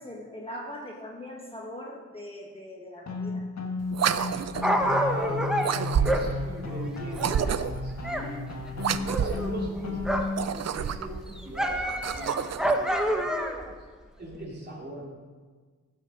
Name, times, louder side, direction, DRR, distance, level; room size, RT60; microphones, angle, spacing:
voice 1, 0.0-3.4, left 1 dB, 20° left, -2 dB, 1.3 m, -41 dB
sound 1, 3.1-10.5, left 3 dB, 60° left, 1.6 m, -34 dB
sound 2, 3.9-4.8 5.6-6.4 7.1-7.9 8.8-9.5 10.2-11.2 11.8-12.8, right 8 dB, 60° right, 0.5 m, -29 dB
Dog, 4.2-8.3 8.5-10.5 10.8-13.7 14.3-14.4, equal, ahead, 1.0 m, -29 dB
voice 2, 4.7-8.4 8.9-13.3 14.2-15.0, equal, 35° right, -3 dB, 3.0 m, -40 dB
15.5 x 6.5 x 6.4 m, 1.4 s
wide cardioid pair, 150°, 31 cm